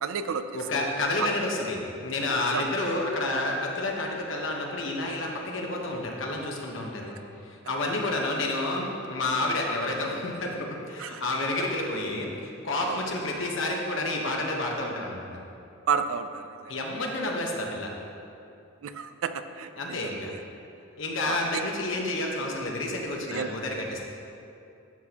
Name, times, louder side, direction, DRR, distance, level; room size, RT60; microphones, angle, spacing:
voice 1, 0.0-0.5 1.2-1.3 2.5-2.7 11.0-11.2 12.9-13.0 15.9-16.4 18.8-20.4 21.3-21.4 23.3-23.5, right 6 dB, 90° right, 10 dB, 0.4 m, -31 dB
voice 2, 0.5-7.2 7.4-15.3 16.7-17.9 19.8-20.3 21.0-24.0, left 2 dB, 70° left, 0 dB, 1.1 m, -30 dB
12.0 x 6.1 x 2.9 m, 2.7 s
head